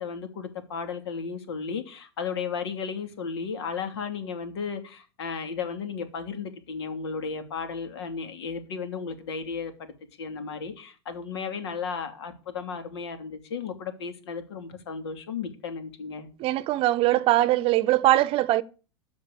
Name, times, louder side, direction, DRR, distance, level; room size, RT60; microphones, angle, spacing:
voice 1, 0.0-9.9 10.2-16.3, left 5 dB, 75° left, 2.9 m, -34 dB
voice 2, 16.4-18.6, right 15 dB, 40° right, 0.8 m, -21 dB
13.5 x 5.2 x 8.4 m
hypercardioid pair, 105°, 14 cm